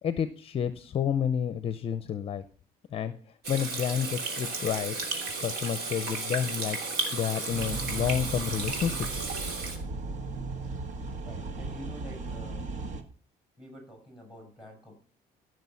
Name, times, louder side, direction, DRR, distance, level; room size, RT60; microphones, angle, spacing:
voice 1, 0.0-2.4 2.9-3.1 3.5-5.0 5.4-6.8 7.1-9.1, left 8 dB, 35° left, 13 dB, 0.6 m, -30 dB
Water tap faucet / Sink (filling or washing), 3.4-9.8, right 3 dB, 85° right, 3.0 m, -34 dB
sound 1, 7.5-13.0, right 3 dB, 50° right, 1.5 m, -36 dB
voice 2, 11.2-12.7 13.6-14.9, equal, 5° right, 2 dB, 6.2 m, -47 dB
15.0 x 6.5 x 7.0 m, 0.42 s
cardioid pair, 145°, 16 cm